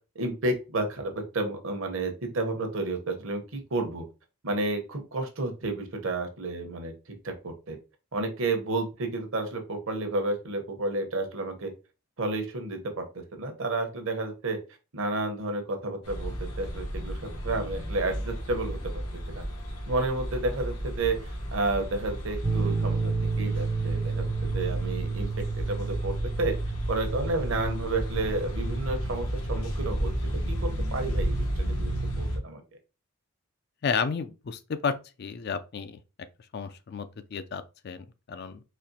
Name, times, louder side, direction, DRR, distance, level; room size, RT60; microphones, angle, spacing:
voice 1, 0.1-4.0 4.4-6.9 7.2-7.8 8.1-11.7 12.2-14.6 14.9-19.0 19.3-19.4 19.9-21.2 21.5-23.1 23.4-26.6 26.9-32.6, right 2 dB, 65° right, 1.0 m, -31 dB
sound 1, 16.0-32.4, equal, 90° left, 1.3 m, -32 dB
sound 2, 22.4-29.7, right 4 dB, 25° right, 0.4 m, -32 dB
voice 2, 33.8-34.9 35.2-36.0 36.5-38.6, left 6 dB, 50° left, 0.4 m, -32 dB
4.2 x 2.8 x 2.8 m
head